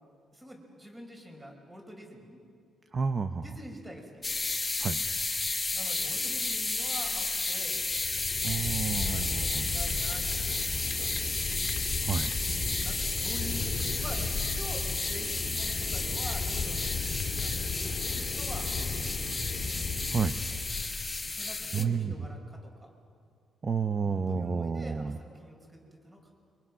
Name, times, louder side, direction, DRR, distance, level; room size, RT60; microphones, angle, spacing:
voice 1, 0.3-2.4 3.4-4.3 5.7-7.8 8.8-11.1 12.4-17.8 18.4-18.7 19.0-19.7 21.2-22.9 24.0-26.3, equal, 15° right, 1 dB, 5.5 m, -46 dB
voice 2, 2.9-3.4 4.8-5.0 8.4-9.7 12.0-12.3 20.1-20.4 21.7-22.1 23.6-25.2, right 5 dB, 30° right, 10 dB, 0.7 m, -30 dB
sound 1, 4.2-21.8, left 3 dB, 20° left, 1.4 m, -32 dB
Fire, 7.8-21.3, left 5 dB, 50° left, 2.2 m, -36 dB
29.5 x 25.0 x 6.3 m, 2.3 s
cardioid pair, 135°, 0 cm